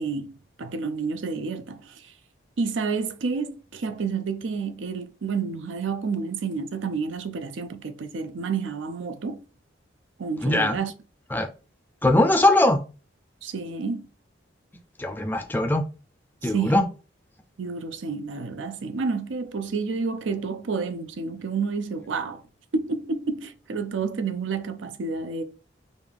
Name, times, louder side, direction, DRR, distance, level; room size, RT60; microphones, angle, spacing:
voice 1, 0.0-2.0 2.6-9.4 10.2-10.9 13.4-14.1 16.4-16.8 17.6-22.4 22.7-25.4, right 4 dB, 75° right, 0.5 m, -30 dB
voice 2, 10.4-10.8 11.3-11.5 12.0-12.8 15.0-15.8 16.4-16.8, left 1 dB, 10° left, 0.4 m, -20 dB
5.0 x 2.4 x 3.4 m
head